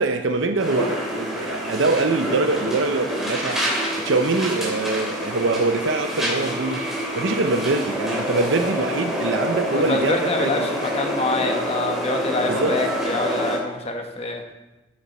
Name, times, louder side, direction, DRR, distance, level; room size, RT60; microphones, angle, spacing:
voice 1, 0.0-6.8 7.1-10.7 12.4-12.8, right 3 dB, 80° right, 6 dB, 0.7 m, -24 dB
sound 1, 0.6-13.6, equal, ahead, 3.0 m, -27 dB
voice 2, 9.7-14.4, left 2 dB, 35° left, 3 dB, 1.3 m, -26 dB
13.5 x 7.3 x 4.3 m, 1.0 s
head